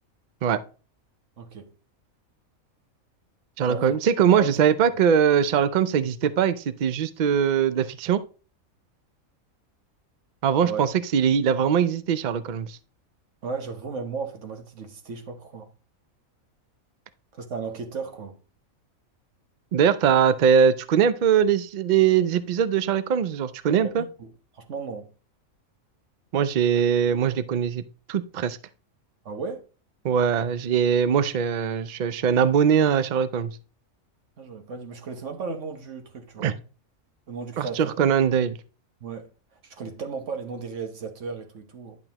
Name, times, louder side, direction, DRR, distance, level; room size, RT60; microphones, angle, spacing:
voice 1, 1.4-1.7 3.6-4.0 4.3-4.5 10.6-10.8 13.4-15.7 17.3-18.4 23.8-25.1 29.2-29.6 34.4-36.5 37.3-37.9 39.0-39.3 39.6-42.0, right 5 dB, 60° right, 1.4 m, -35 dB
voice 2, 3.6-8.2 10.4-12.8 19.7-24.0 26.3-27.8 28.1-28.6 30.0-33.5 36.4-36.5 37.6-38.6, right 8 dB, 75° right, 0.4 m, -21 dB
11.0 x 5.9 x 2.9 m
omnidirectional pair, 1.5 m